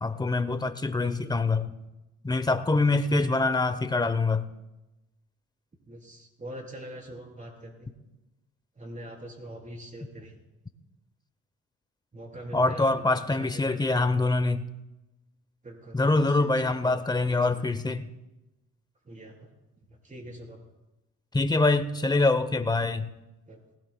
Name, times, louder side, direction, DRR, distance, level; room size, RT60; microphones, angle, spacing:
voice 1, 0.0-1.7 2.2-4.5 12.5-14.6 15.9-18.1 21.3-23.1, left 3 dB, 15° left, 0.8 m, -25 dB
voice 2, 5.9-7.9 8.8-10.4 12.1-14.2 15.6-17.7 19.1-19.5 19.9-20.6 23.5-23.6, right 1 dB, 25° right, 3.6 m, -44 dB
19.0 x 16.5 x 2.3 m
cardioid pair, 90°, 30 cm